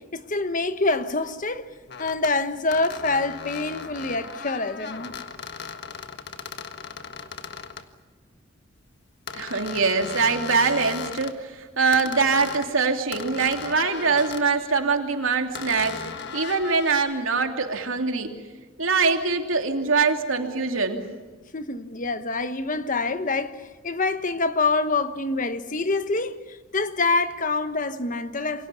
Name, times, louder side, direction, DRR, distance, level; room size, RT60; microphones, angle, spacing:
voice 1, 0.0-1.7 2.0-5.1 21.5-28.7, left 3 dB, 40° left, 1.3 m, -26 dB
sound 1, 1.0-1.1 1.9-2.3 2.7-7.9 9.3-11.4 11.9-12.7 13.1-14.5 15.5-17.0, left 6 dB, 55° left, 1.5 m, -37 dB
voice 2, 9.3-16.0 16.3-18.3 18.8-21.0, right 4 dB, 85° right, 2.9 m, -23 dB
28.0 x 24.5 x 7.0 m
head